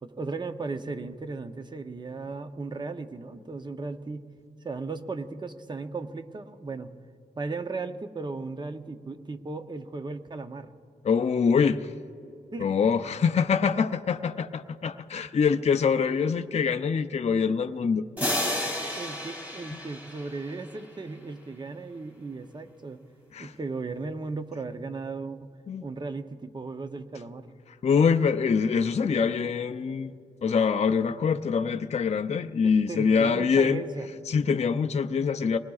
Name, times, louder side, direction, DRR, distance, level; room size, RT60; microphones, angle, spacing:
voice 1, 0.0-4.3 4.6-6.9 7.4-10.7 12.5-12.7 18.4-23.0 23.4-25.4 25.8-27.5 32.6-34.1, right 3 dB, 25° right, 8 dB, 0.6 m, -36 dB
voice 2, 11.0-11.9 12.6-18.0 19.7-19.8 23.3-23.5 25.7-25.8 27.8-30.1 30.4-33.8 34.3-35.6, left 6 dB, 40° left, 7 dB, 0.4 m, -24 dB
sound 1, 18.2-20.9, left 1 dB, 10° right, 2.2 m, -32 dB
25.0 x 19.5 x 2.4 m, 2.4 s
wide cardioid pair, 130°, 17 cm